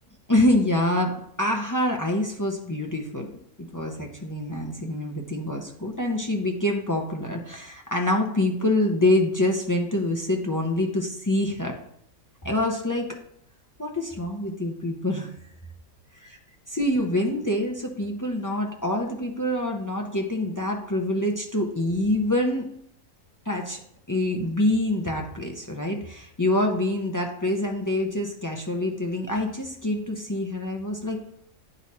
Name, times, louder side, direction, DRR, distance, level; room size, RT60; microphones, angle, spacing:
voice 1, 0.3-3.3 3.7-11.7 12.4-13.1 13.8-15.3 16.7-22.7 23.5-23.8 24.1-31.2, left 1 dB, 30° left, 1 dB, 0.3 m, -26 dB
9.8 x 3.9 x 4.2 m, 0.70 s
omnidirectional pair, 1.5 m